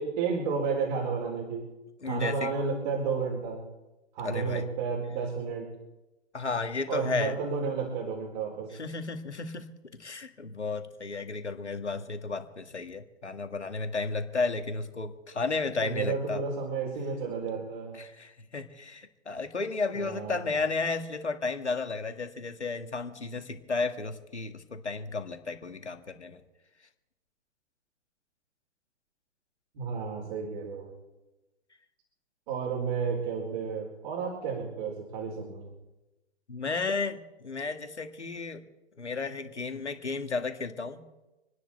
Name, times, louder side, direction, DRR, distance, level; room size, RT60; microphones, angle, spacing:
voice 1, 0.0-1.6 2.0-3.7 4.1-5.7 6.9-8.7 15.8-18.0 19.9-20.4 29.7-30.9 32.5-35.7, right 5 dB, 45° right, -2 dB, 4.3 m, -32 dB
voice 2, 2.0-2.6 4.2-4.6 6.3-7.4 8.7-9.7 10.0-16.4 17.9-26.4 36.5-38.6 39.0-41.0, left 4 dB, 85° left, 7 dB, 2.1 m, -33 dB
28.0 x 10.5 x 4.4 m, 1.0 s
figure-of-eight pair, 115°, 33 cm